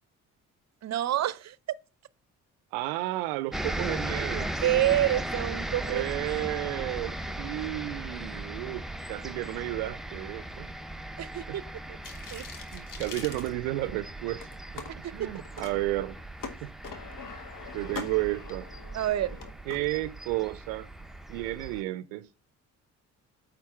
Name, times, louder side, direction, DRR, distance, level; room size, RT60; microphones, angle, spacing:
voice 1, 0.8-1.6 4.6-6.0 6.3-6.5 11.2-11.6 12.3-12.5 15.0-15.3 18.9-19.4, right 13 dB, 45° right, 0.7 m, -27 dB
voice 2, 2.7-4.5 5.9-10.7 11.5-11.6 12.7-14.5 14.7-16.2 16.6-16.7 17.7-18.7 19.7-20.9 21.3-22.3, right 17 dB, 85° right, 0.5 m, -32 dB
sound 1, 3.5-21.8, right 1 dB, ahead, 0.8 m, -38 dB
sound 2, 12.0-14.0 14.4-14.9 15.4-15.7 16.1-19.8, left 5 dB, 60° left, 1.6 m, -43 dB
8.7 x 3.9 x 5.7 m
hypercardioid pair, 50°, 37 cm